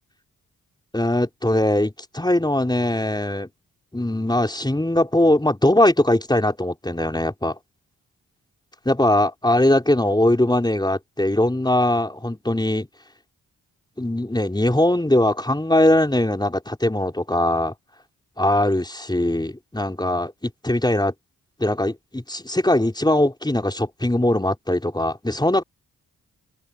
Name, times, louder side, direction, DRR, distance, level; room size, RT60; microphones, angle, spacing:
voice 1, 0.9-3.5 3.9-7.6 8.8-12.9 14.0-17.7 18.4-21.1 21.6-25.6, left 1 dB, 10° left, 4.5 m, -21 dB
open air
supercardioid pair, 45°, 34 cm